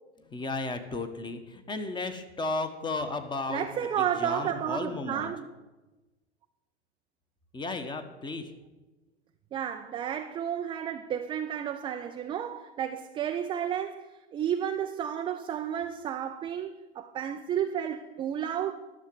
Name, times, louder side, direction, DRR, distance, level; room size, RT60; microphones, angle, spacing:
voice 1, 0.2-5.3 7.5-8.5, left 3 dB, 15° left, 1.1 m, -34 dB
voice 2, 3.5-5.5 9.5-18.7, right 9 dB, 15° right, 0.4 m, -32 dB
12.0 x 6.6 x 7.7 m
hypercardioid pair, 100°, 34 cm